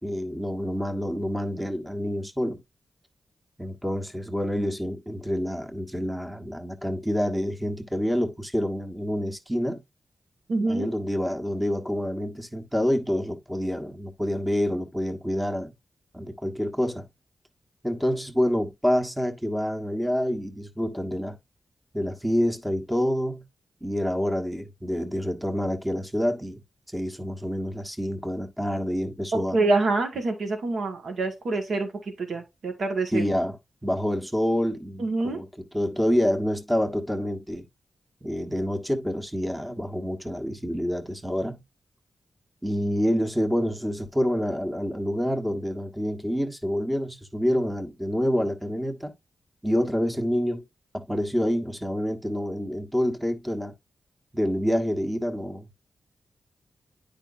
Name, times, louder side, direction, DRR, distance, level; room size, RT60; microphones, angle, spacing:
voice 1, 0.0-2.6 3.6-9.8 10.7-15.7 16.1-17.1 17.8-21.4 21.9-23.4 23.8-26.6 26.9-29.6 33.1-33.6 33.8-35.5 35.7-37.6 38.2-41.6 42.6-49.1 49.6-50.6 50.9-53.7 54.3-55.7, equal, 10° right, 1.4 m, -27 dB
voice 2, 10.5-10.9 29.3-33.2 35.0-35.4, right 3 dB, 75° right, 1.9 m, -26 dB
8.9 x 5.1 x 2.7 m
supercardioid pair, 40°, 0 cm